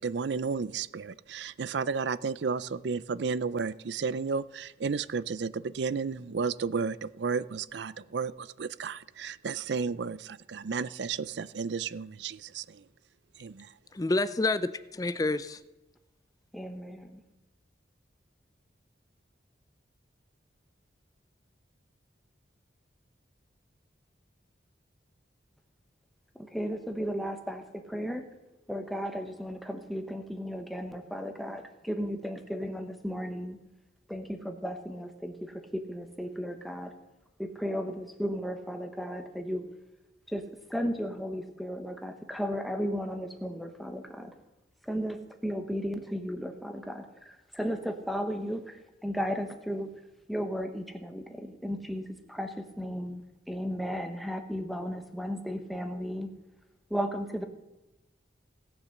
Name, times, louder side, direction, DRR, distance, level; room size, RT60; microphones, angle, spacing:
voice 1, 0.0-12.8 13.4-13.7, right 5 dB, 70° right, 18 dB, 0.5 m, -33 dB
voice 2, 13.9-15.6, left 2 dB, 20° left, 14 dB, 0.4 m, -28 dB
voice 3, 16.5-17.2 26.4-28.3 28.7-33.6 34.1-36.9 37.4-39.7 40.3-40.4 40.7-44.3 44.8-49.9 50.3-56.3 56.9-57.5, equal, ahead, 5 dB, 1.0 m, -35 dB
18.0 x 7.0 x 6.5 m, 1.0 s
head